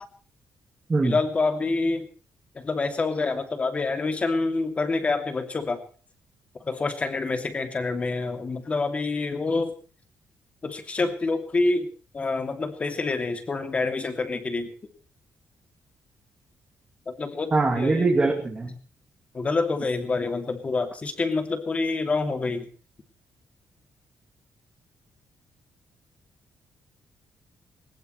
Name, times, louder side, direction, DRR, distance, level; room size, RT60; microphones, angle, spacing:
voice 1, 1.0-2.1 2.6-5.8 6.7-9.7 10.6-11.9 12.1-14.7 17.1-18.1 19.3-22.7, left 3 dB, 25° left, 7 dB, 2.6 m, -27 dB
voice 2, 17.5-18.8, right 3 dB, 20° right, -1 dB, 2.8 m, -22 dB
21.5 x 20.0 x 3.3 m, 0.40 s
cardioid pair, 175°, 5 cm